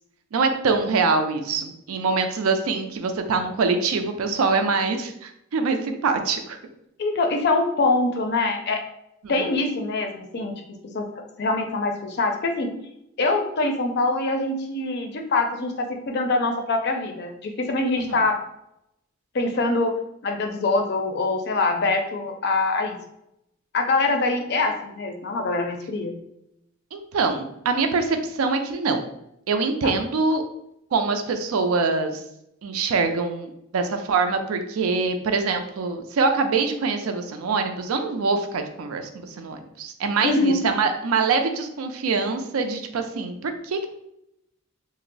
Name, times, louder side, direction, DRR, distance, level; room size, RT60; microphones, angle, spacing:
voice 1, 0.3-6.6 9.2-9.3 18.0-18.2 26.9-29.0 29.5-30.4 30.9-32.2 32.6-43.9, right 4 dB, 90° right, 7 dB, 0.4 m, -24 dB
voice 2, 7.0-8.8 9.3-10.5 10.9-12.7 13.2-18.4 19.3-19.9 20.2-23.0 23.7-26.2 29.8-29.9 40.2-40.6, left 2 dB, 50° left, 4 dB, 0.4 m, -24 dB
2.5 x 2.0 x 3.8 m, 0.81 s
head